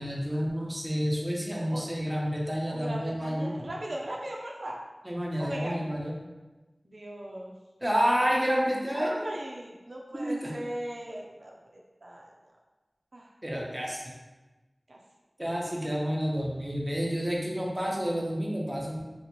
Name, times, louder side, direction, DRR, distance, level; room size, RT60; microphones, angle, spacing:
voice 1, 0.0-3.7 5.0-6.1 7.8-9.3 10.2-10.5 13.4-14.1 15.4-19.0, equal, 15° right, -3 dB, 0.8 m, -29 dB
voice 2, 1.5-1.8 2.6-4.8 5.4-5.8 6.8-7.5 8.9-12.3 13.1-13.3 14.9-15.0, right 1 dB, 75° right, -2 dB, 0.4 m, -38 dB
3.3 x 2.8 x 3.0 m, 1.2 s
wide cardioid pair, 55°, 0 cm